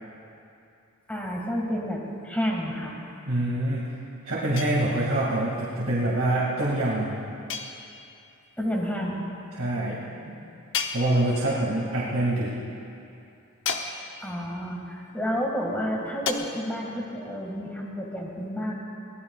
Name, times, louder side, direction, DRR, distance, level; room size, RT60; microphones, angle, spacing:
voice 1, 1.1-3.0 8.6-9.2 14.2-18.7, equal, 5° left, -2 dB, 2.0 m, -30 dB
voice 2, 3.3-3.9 4.2-7.2 9.5-10.0 10.3-10.4 10.9-12.5, right 1 dB, 70° right, -7 dB, 2.3 m, -25 dB
sound 1, 4.6-5.3 7.5-8.3 10.7-11.7 13.6-14.4 16.3-16.4, left 6 dB, 60° left, 0.9 m, -33 dB
22.5 x 18.0 x 2.4 m, 2.7 s
head